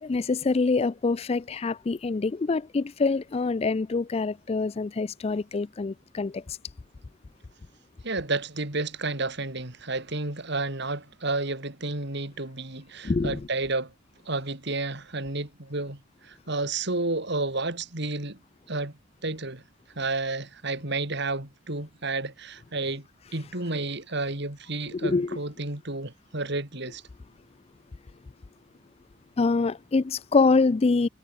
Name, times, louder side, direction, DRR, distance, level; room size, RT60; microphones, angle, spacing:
voice 1, 0.0-6.6 13.0-13.4 24.9-25.4 29.4-31.1, left 4 dB, 30° left, 0.4 m, -25 dB
voice 2, 8.0-13.9 14.3-18.4 18.7-19.0 19.2-19.6 20.0-23.0 23.3-27.0, right 2 dB, 60° right, 3.5 m, -31 dB
head